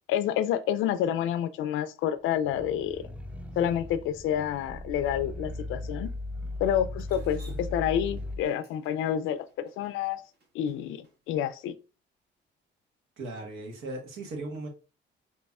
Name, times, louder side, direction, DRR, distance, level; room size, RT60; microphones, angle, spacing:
voice 1, 0.1-3.0 3.6-6.1 6.6-10.2 10.5-11.7, left 10 dB, 90° left, 0.4 m, -29 dB
sound 1, 2.4-8.5, left 2 dB, 5° right, 0.5 m, -38 dB
Drip, 7.0-11.1, right 3 dB, 55° right, 1.3 m, -52 dB
voice 2, 13.2-14.7, right 2 dB, 90° right, 1.3 m, -37 dB
5.3 x 2.9 x 2.3 m
cardioid pair, 90°, 20 cm